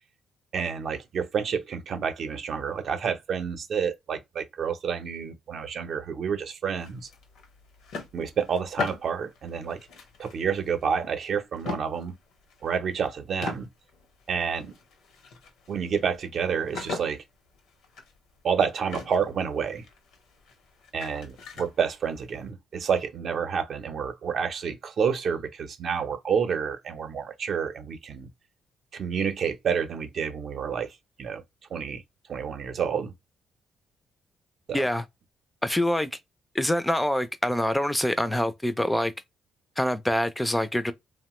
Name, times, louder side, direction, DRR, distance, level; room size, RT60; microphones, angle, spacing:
voice 1, 0.5-7.1 8.1-9.8 10.2-12.1 12.6-13.7 14.3-14.7 15.7-17.2 18.4-19.8 20.9-28.3 28.9-30.9 31.2-31.4 31.7-32.0 32.3-33.1 34.7-34.9, right 6 dB, 60° right, 0.6 m, -29 dB
sound 1, 6.8-11.2 11.6-13.1 13.4-22.5, left 4 dB, 85° left, 0.7 m, -40 dB
voice 2, 34.7-35.0 35.6-36.2 36.5-39.1 39.8-40.9, left 1 dB, 10° left, 0.3 m, -25 dB
2.9 x 2.1 x 2.9 m
cardioid pair, 90°, 0 cm